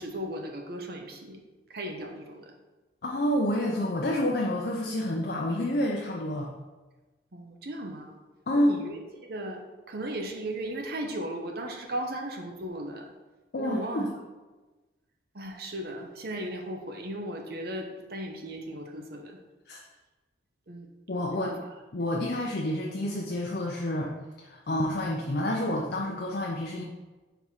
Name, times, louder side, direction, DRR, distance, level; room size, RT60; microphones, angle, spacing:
voice 1, 0.0-1.4 1.7-2.5 7.3-8.2 8.6-9.6 9.9-13.1 13.6-14.1 15.3-19.4 20.7-20.9 21.3-21.6, right 1 dB, 55° right, 3 dB, 0.7 m, -36 dB
voice 2, 3.0-6.5 8.5-8.7 13.5-14.1 19.7-19.8 21.1-21.5 21.9-24.1 24.4-26.8, left 1 dB, 55° left, -2 dB, 0.6 m, -28 dB
4.6 x 3.6 x 5.6 m, 1.2 s
head